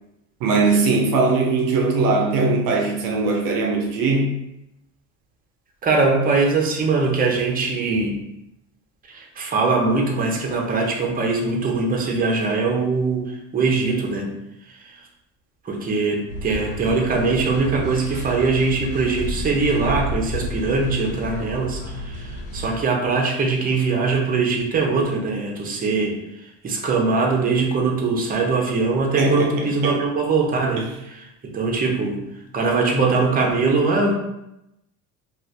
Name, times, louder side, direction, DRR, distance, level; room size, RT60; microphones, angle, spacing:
voice 1, 0.4-4.4 29.2-30.0 30.8-30.9, right 3 dB, 60° right, 1 dB, 0.5 m, -20 dB
voice 2, 5.8-8.2 9.1-14.3 14.7-14.9 15.6-26.2 26.6-32.2 32.5-34.1, right 4 dB, 25° right, 0 dB, 0.7 m, -22 dB
sound 1, 16.3-22.7, equal, 70° left, 0.8 m, -31 dB
2.5 x 2.4 x 3.3 m, 0.86 s
supercardioid pair, 95°, 37 cm